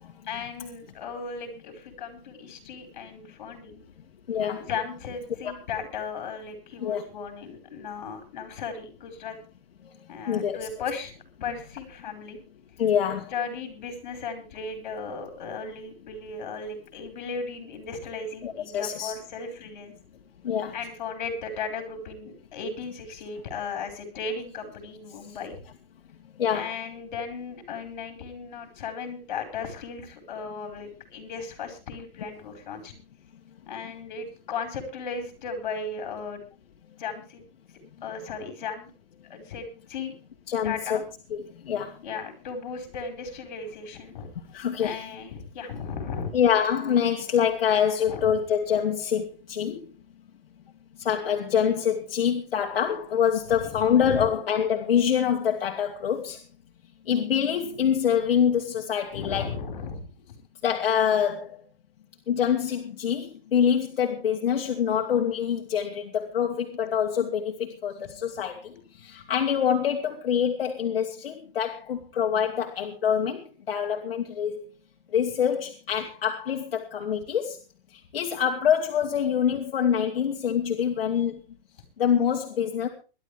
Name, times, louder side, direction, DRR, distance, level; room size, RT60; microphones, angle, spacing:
voice 1, 0.3-3.8 4.6-9.4 10.1-11.1 11.4-12.4 13.3-19.9 20.7-25.6 26.5-32.9 33.7-36.4 37.0-37.4 38.0-38.9 39.3-40.1 40.6-41.0 42.0-44.3 44.8-46.4 48.1-48.3 53.5-54.3 59.1-60.1, left 5 dB, 50° left, 6 dB, 4.9 m, -36 dB
voice 2, 4.3-4.7 6.8-7.0 9.8-10.6 12.8-13.3 18.4-19.1 20.4-20.8 25.3-25.4 26.4-26.7 40.5-41.0 41.3-42.0 44.5-45.0 46.3-49.9 51.0-56.4 57.1-59.5 60.6-61.6 62.3-74.6 75.1-77.6 77.9-81.4 82.0-82.9, left 8 dB, 75° left, 2 dB, 2.2 m, -25 dB
22.0 x 11.5 x 3.4 m, 0.33 s
hypercardioid pair, 180°, 29 cm